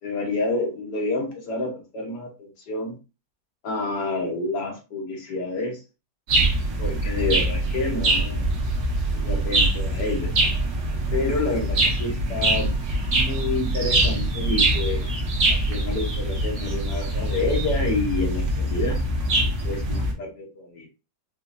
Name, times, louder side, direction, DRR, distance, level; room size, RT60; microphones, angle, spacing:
voice 1, 0.0-2.9 3.6-5.8 6.8-8.5 9.1-10.3 11.1-12.7 13.1-15.1 15.5-19.0 19.6-20.9, left 2 dB, 85° left, 1 dB, 1.8 m, -29 dB
sound 1, 6.3-20.1, right 1 dB, 55° right, 1.1 m, -24 dB
4.5 x 2.4 x 2.6 m, 0.29 s
omnidirectional pair, 1.8 m